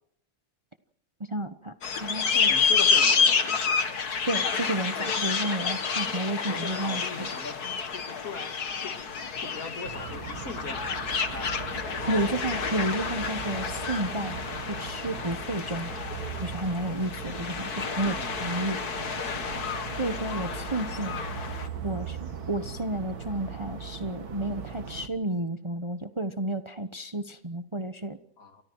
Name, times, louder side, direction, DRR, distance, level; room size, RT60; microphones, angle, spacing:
voice 1, 1.2-2.6 4.2-7.0 12.1-15.9 16.4-18.1 18.4-18.8 20.0-21.2 21.8-28.2, right 1 dB, 20° right, 9 dB, 1.0 m, -31 dB
sound 1, 1.8-21.7, left 5 dB, 80° left, 2.3 m, -29 dB
voice 2, 2.5-4.3 6.5-9.0 9.4-10.9 11.3-11.5 12.0-12.6 18.0-18.5 28.4-28.6, left 4 dB, 65° left, 6 dB, 3.0 m, -41 dB
sound 2, 9.8-25.1, right 6 dB, 75° right, 2.4 m, -39 dB
30.0 x 26.0 x 4.6 m, 0.68 s
omnidirectional pair, 1.6 m